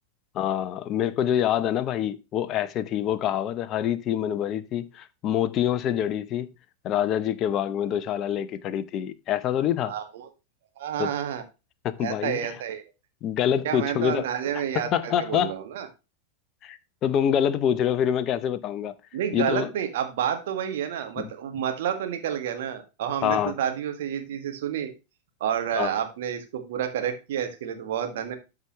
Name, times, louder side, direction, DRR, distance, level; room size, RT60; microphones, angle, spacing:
voice 1, 0.3-6.5 6.8-9.9 11.0-11.1 11.8-12.4 13.2-14.3 14.5-15.5 16.6-18.9 19.3-19.7 21.2-21.3 23.2-23.5 25.8-25.9, left 10 dB, 35° left, 0.7 m, -26 dB
voice 2, 9.9-10.3 10.8-11.4 12.0-12.8 13.6-15.9 19.1-24.9 25.4-28.4, right 9 dB, 55° right, 1.7 m, -29 dB
13.0 x 4.9 x 3.1 m
figure-of-eight pair, 90°, 0 cm